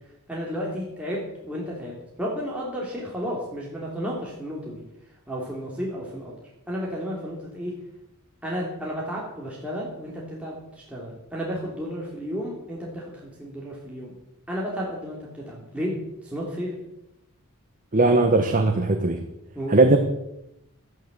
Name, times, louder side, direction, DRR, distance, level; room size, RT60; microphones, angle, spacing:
voice 1, 0.3-1.9 2.2-4.8 5.3-6.3 6.7-7.7 8.4-14.1 14.5-16.0 16.2-16.7 19.5-19.8, equal, 5° right, -5 dB, 3.0 m, -32 dB
voice 2, 17.9-19.2 19.7-20.0, right 2 dB, 40° right, 5 dB, 1.2 m, -18 dB
13.0 x 10.5 x 8.2 m, 0.87 s
head